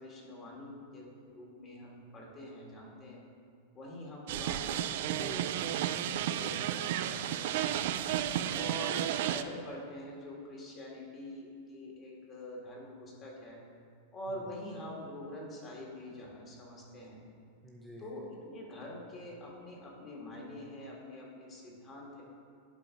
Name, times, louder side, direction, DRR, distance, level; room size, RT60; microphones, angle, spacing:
voice 1, 0.0-3.2 3.7-7.7 8.5-13.6 14.1-17.2 18.0-22.2, left 1 dB, 30° left, -2 dB, 2.0 m, -45 dB
sound 1, 4.3-9.4, right 11 dB, 65° right, 0.3 m, -32 dB
voice 2, 5.2-5.7 7.8-8.9 17.6-18.1, equal, 5° left, -2 dB, 0.6 m, -50 dB
11.0 x 3.9 x 4.7 m, 2.4 s
hypercardioid pair, 120°, 0 cm